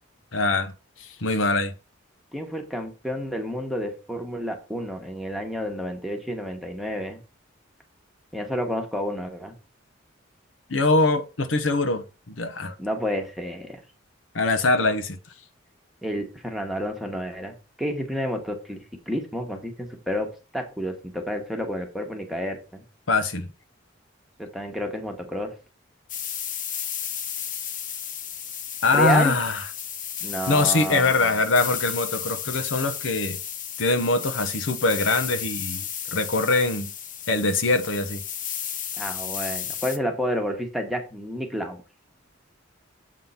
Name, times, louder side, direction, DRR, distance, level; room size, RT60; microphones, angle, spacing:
voice 1, 0.3-0.7 1.0-1.7 10.7-12.8 14.3-15.2 23.1-23.5 28.8-29.6 30.5-33.4 33.8-35.8 36.1-36.9 37.3-38.2, left 3 dB, 75° left, 0.9 m, -23 dB
voice 2, 2.3-7.2 8.3-9.6 12.8-13.8 16.0-20.3 20.5-22.8 24.4-25.5 28.9-29.4 30.2-31.4 39.0-41.8, equal, ahead, 1.2 m, -30 dB
sound 1, 26.1-40.0, left 9 dB, 40° left, 0.7 m, -33 dB
7.5 x 3.7 x 5.6 m
head